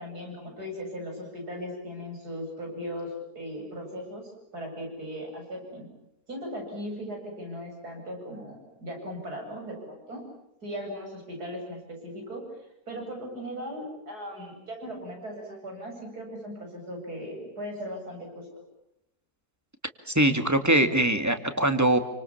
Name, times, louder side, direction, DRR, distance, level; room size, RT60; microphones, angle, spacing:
voice 1, 0.0-5.9 6.3-10.2 10.6-12.4 12.9-18.5, equal, 75° right, 1 dB, 8.8 m, -38 dB
voice 2, 20.1-22.0, right 1 dB, 10° right, 7 dB, 2.2 m, -22 dB
29.0 x 26.0 x 7.3 m, 0.82 s
omnidirectional pair, 1.7 m